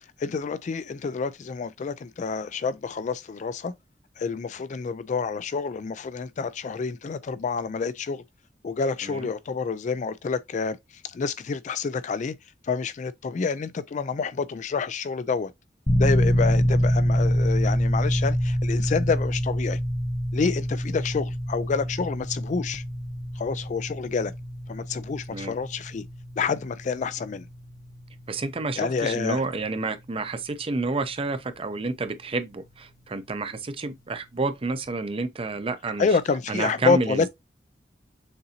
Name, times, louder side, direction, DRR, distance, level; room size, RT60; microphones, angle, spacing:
voice 1, 0.2-3.7 4.2-8.2 8.6-10.8 11.0-12.3 12.6-15.5 16.0-19.8 20.3-22.8 23.4-24.3 24.7-26.0 26.4-27.5 28.8-29.4 36.0-37.3, left 5 dB, 45° left, 0.4 m, -28 dB
sound 1, 15.9-32.6, equal, 20° left, 0.8 m, -27 dB
voice 2, 28.3-36.1 36.5-37.3, right 3 dB, 30° right, 0.6 m, -29 dB
6.6 x 2.7 x 2.8 m
head